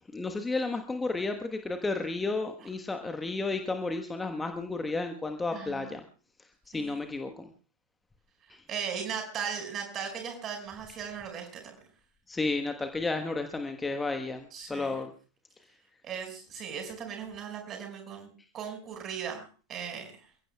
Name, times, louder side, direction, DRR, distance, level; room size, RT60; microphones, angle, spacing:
voice 1, 0.1-6.0 6.7-7.5 8.5-8.6 12.3-15.1, left 3 dB, 10° left, 6 dB, 1.2 m, -32 dB
voice 2, 5.5-5.9 6.7-7.0 8.7-11.8 14.5-14.9 16.0-18.3 18.5-20.1, right 7 dB, 30° right, 4 dB, 5.4 m, -37 dB
28.5 x 16.0 x 2.3 m, 0.38 s
figure-of-eight pair, 90°, 0 cm